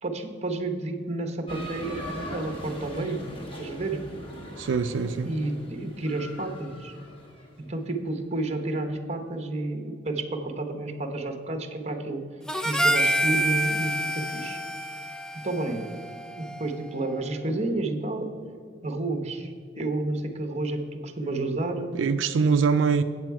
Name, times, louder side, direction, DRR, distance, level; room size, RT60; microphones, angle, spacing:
voice 1, 0.0-3.2 3.6-4.0 5.2-7.0 7.6-12.2 12.6-14.6 15.4-15.9 16.4-18.4 18.8-19.5 19.8-21.9, right 2 dB, 35° right, 0.8 m, -30 dB
sound 1, 1.5-7.5, equal, 30° left, 1.3 m, -40 dB
voice 2, 4.6-5.3 22.0-23.0, right 5 dB, 85° right, 0.4 m, -23 dB
Harmonica, 12.5-17.0, right 1 dB, 5° left, 0.3 m, -28 dB
8.6 x 7.6 x 4.6 m
head